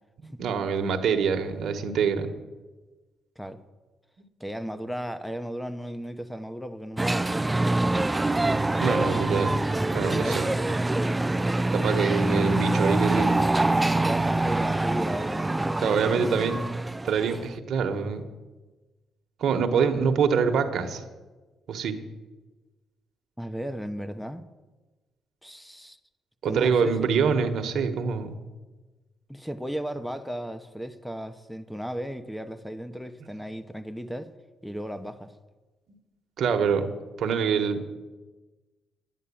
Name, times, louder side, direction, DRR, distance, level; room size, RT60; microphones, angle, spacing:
voice 1, 0.4-2.3 8.8-9.5 9.9-10.4 11.7-13.3 15.8-16.6 17.0-18.3 19.4-21.0 21.7-22.0 26.4-28.4 36.4-36.9 37.2-37.9, right 6 dB, 65° right, 5 dB, 1.3 m, -25 dB
voice 2, 4.4-8.1 9.0-9.2 10.1-10.4 10.9-11.8 13.9-16.2 23.4-24.4 25.4-26.0 26.4-27.1 29.3-34.3 34.6-35.3, equal, ahead, 11 dB, 0.9 m, -35 dB
sound 1, 7.0-17.5, right 2 dB, 15° right, 0.3 m, -25 dB
10.0 x 9.3 x 8.6 m, 1.2 s
cardioid pair, 90°, 0 cm